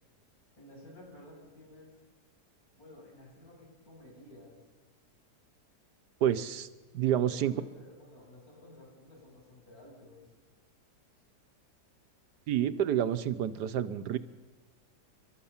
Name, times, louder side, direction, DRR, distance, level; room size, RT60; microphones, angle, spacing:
voice 1, 0.6-1.9 2.7-4.6 7.2-10.3, left 1 dB, 65° left, -3 dB, 7.9 m, -53 dB
voice 2, 6.2-6.7 6.9-7.5 12.5-14.2, right 10 dB, 85° right, 12 dB, 1.5 m, -28 dB
30.0 x 12.5 x 7.2 m, 1.2 s
omnidirectional pair, 1.7 m